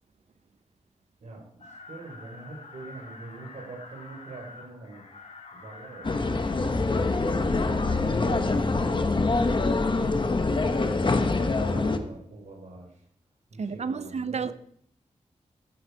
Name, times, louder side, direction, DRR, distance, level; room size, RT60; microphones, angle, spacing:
voice 1, 1.2-5.0 5.5-9.2 9.9-11.0 11.7-13.0 13.5-14.5, right 2 dB, 85° right, 4.1 m, -44 dB
sound 1, 1.6-7.8, left 3 dB, 70° left, 2.5 m, -48 dB
sound 2, 6.0-12.0, left 3 dB, 40° left, 1.2 m, -25 dB
voice 2, 13.6-14.5, right 5 dB, 65° right, 0.8 m, -31 dB
15.5 x 9.1 x 4.9 m
wide cardioid pair, 110°, 12 cm